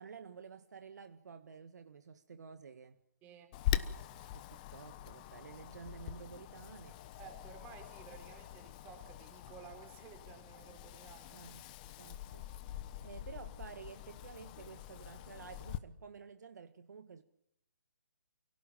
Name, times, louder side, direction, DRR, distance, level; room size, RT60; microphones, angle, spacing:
voice 1, 0.0-3.0 4.3-7.0 11.3-12.5 13.0-17.2, right 6 dB, 60° right, 1.8 m, -52 dB
voice 2, 3.2-3.5 7.2-11.5, right 7 dB, 20° right, 4.3 m, -54 dB
Wind, 3.5-15.8, left 12 dB, 25° left, 1.1 m, -43 dB
28.5 x 17.5 x 9.0 m
hypercardioid pair, 150°, 10 cm